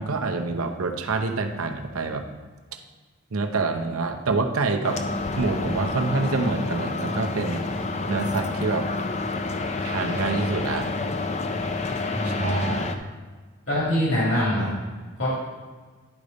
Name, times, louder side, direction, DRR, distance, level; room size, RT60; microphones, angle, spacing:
voice 1, 0.0-2.3 3.3-5.0 5.4-7.6 8.1-8.9 9.8-10.9 12.2-13.0, right 3 dB, 85° right, 5 dB, 0.8 m, -27 dB
sound 1, 4.8-13.0, left 3 dB, 30° left, 0.5 m, -29 dB
voice 2, 12.1-12.8 13.7-14.7 15.2-15.3, equal, 60° left, -7 dB, 2.5 m, -24 dB
10.5 x 5.0 x 4.0 m, 1.4 s
head